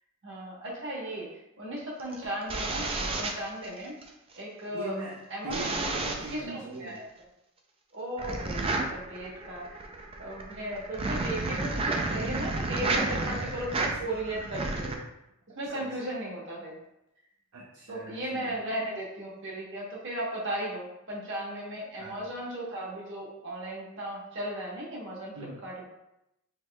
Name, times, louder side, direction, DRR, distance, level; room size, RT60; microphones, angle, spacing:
voice 1, 0.2-4.0 4.4-5.0 5.3-5.9 6.3-7.0 7.9-9.8 10.2-15.0 15.5-16.8 17.9-25.8, right 1 dB, 55° right, -4 dB, 1.1 m, -36 dB
sound 1, 2.0-4.1 5.5-6.4 8.2-15.0, right 2 dB, 25° right, 0.4 m, -31 dB
voice 2, 4.7-7.0 12.9-13.1 13.8-13.9 14.4-14.6 15.7-15.9 17.5-18.6 22.0-22.2 25.4-25.6, right 2 dB, 75° right, -3 dB, 0.6 m, -41 dB
5.9 x 3.0 x 2.3 m, 0.86 s
head